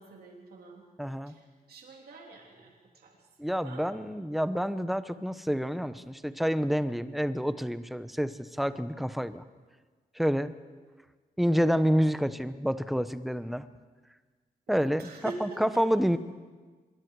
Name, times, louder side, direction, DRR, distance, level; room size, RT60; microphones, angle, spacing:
voice 1, 0.0-0.9 1.3-3.3 3.6-3.9 14.7-15.8, right 3 dB, 80° right, -1 dB, 3.5 m, -45 dB
voice 2, 1.0-1.3 3.4-9.4 10.1-10.5 11.4-13.7 14.7-16.2, equal, ahead, 12 dB, 1.0 m, -28 dB
25.5 x 22.5 x 4.8 m, 1.4 s
cardioid pair, 85°, 16 cm